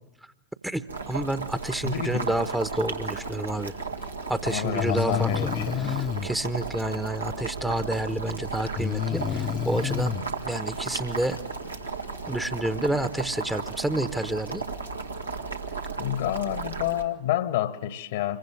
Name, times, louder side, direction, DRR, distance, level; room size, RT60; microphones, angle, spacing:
voice 1, 0.6-3.7 4.3-5.5 5.8-10.2 10.4-11.4 12.3-14.6, right 1 dB, 5° right, 1.0 m, -29 dB
Boiling, 0.9-17.0, right 4 dB, 80° right, 1.7 m, -35 dB
voice 2, 1.8-2.4 4.4-6.0 16.0-18.4, left 12 dB, 55° left, 1.4 m, -29 dB
Breathing, 3.9-4.0 4.8-6.3 8.8-10.2, left 9 dB, 25° left, 0.9 m, -29 dB
Printer, 7.3-17.1, equal, 85° left, 2.6 m, -51 dB
26.0 x 22.5 x 9.6 m
figure-of-eight pair, 90°, 0 cm